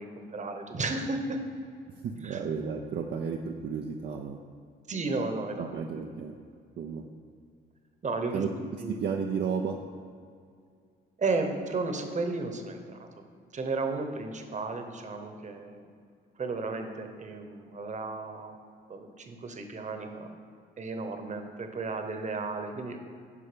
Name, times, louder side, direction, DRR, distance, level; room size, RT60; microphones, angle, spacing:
voice 1, 0.0-1.4 2.2-2.4 4.9-6.1 8.0-9.0 11.2-13.2 13.5-15.9 16.4-18.5 18.9-20.3 20.8-23.0, right 3 dB, 35° right, 6 dB, 1.1 m, -34 dB
voice 2, 2.0-4.4 5.6-6.3 6.8-7.0 8.3-8.5 9.0-9.8, right 6 dB, 60° right, 2 dB, 0.6 m, -32 dB
9.9 x 5.4 x 5.2 m, 2.2 s
cardioid pair, 90°, 20 cm